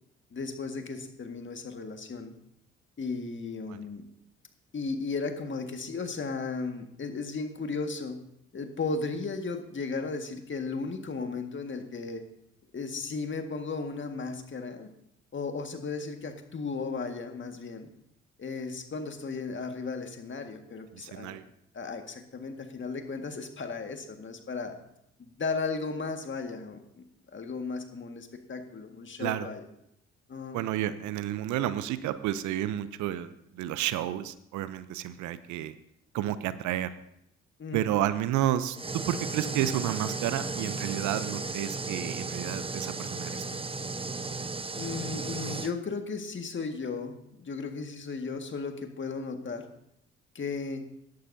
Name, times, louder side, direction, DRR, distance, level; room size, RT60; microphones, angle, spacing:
voice 1, 0.3-2.3 3.0-4.0 4.7-8.2 8.5-12.2 12.7-14.9 15.3-17.9 18.4-21.3 21.7-24.8 25.2-27.0 27.3-29.6 30.3-30.6 37.6-38.0 44.8-49.6 50.4-50.9, left 4 dB, 40° left, 5 dB, 1.8 m, -35 dB
voice 2, 20.9-21.4 29.2-29.5 30.5-35.7 36.1-36.9 37.7-38.8 39.1-43.4, right 12 dB, 70° right, 14 dB, 0.7 m, -31 dB
sound 1, 38.7-45.7, right 3 dB, 20° right, 0.9 m, -35 dB
17.0 x 11.5 x 2.7 m, 0.76 s
hypercardioid pair, 50°, 30 cm